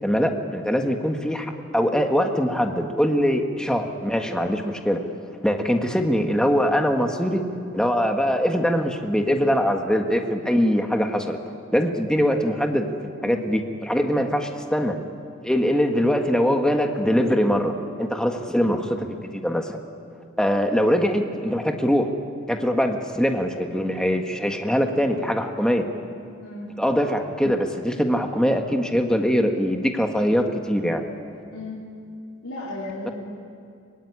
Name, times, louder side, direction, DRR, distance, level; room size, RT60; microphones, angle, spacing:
voice 1, 0.0-5.0 5.4-7.4 7.7-11.4 11.7-15.0 15.4-19.8 20.4-22.1 22.5-25.9 26.8-31.0, equal, 5° left, 4 dB, 1.6 m, -22 dB
voice 2, 32.4-33.1, left 2 dB, 90° left, -5 dB, 3.8 m, -35 dB
24.5 x 21.5 x 9.9 m, 2.4 s
head